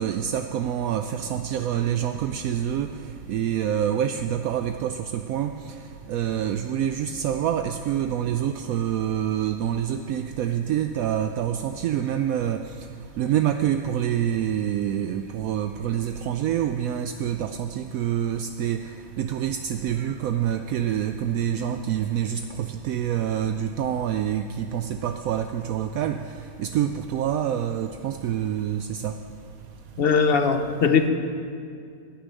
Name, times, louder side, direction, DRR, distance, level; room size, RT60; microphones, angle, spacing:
voice 1, 0.0-2.9 3.3-5.7 6.1-12.6 13.2-18.8 19.2-26.2 26.6-29.1, right 10 dB, 75° right, 7 dB, 1.0 m, -26 dB
voice 2, 30.0-31.1, left 5 dB, 45° left, 8 dB, 0.9 m, -20 dB
11.5 x 10.0 x 9.0 m, 2.4 s
omnidirectional pair, 1.5 m